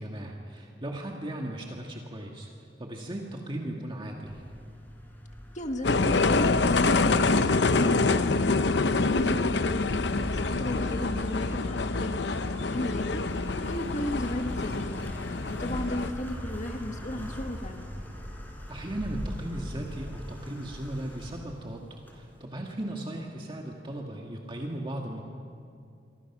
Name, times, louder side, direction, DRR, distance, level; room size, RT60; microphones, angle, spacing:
voice 1, 0.0-2.5 2.8-4.4 18.7-25.2, right 1 dB, 30° right, 0 dB, 1.9 m, -37 dB
sound 1, 4.3-22.4, equal, 10° left, 4.3 m, -41 dB
voice 2, 5.5-8.4 8.8-15.1 15.5-17.9, left 1 dB, 45° left, 5 dB, 1.7 m, -35 dB
sound 2, 5.8-16.1, left 3 dB, 75° left, 0.8 m, -26 dB
28.0 x 24.5 x 6.1 m, 2.4 s
head